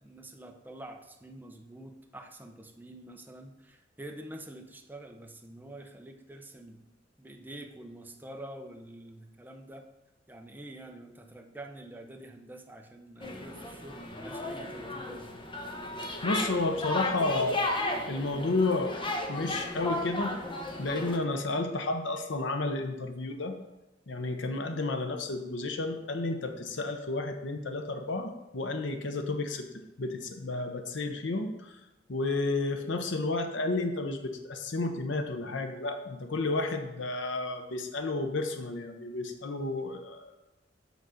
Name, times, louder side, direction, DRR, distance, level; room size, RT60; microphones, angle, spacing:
voice 1, 0.0-6.8 7.2-9.9 10.3-15.4, right 1 dB, 10° right, 3 dB, 0.7 m, -47 dB
sound 1, 13.2-21.2, left 1 dB, 30° left, 1.0 m, -34 dB
voice 2, 16.2-17.6 18.1-18.9 19.3-20.3 20.8-23.5 24.1-29.6 30.0-31.8 32.1-40.3, left 2 dB, 80° left, 6 dB, 0.8 m, -31 dB
8.2 x 3.9 x 6.3 m, 1.0 s
head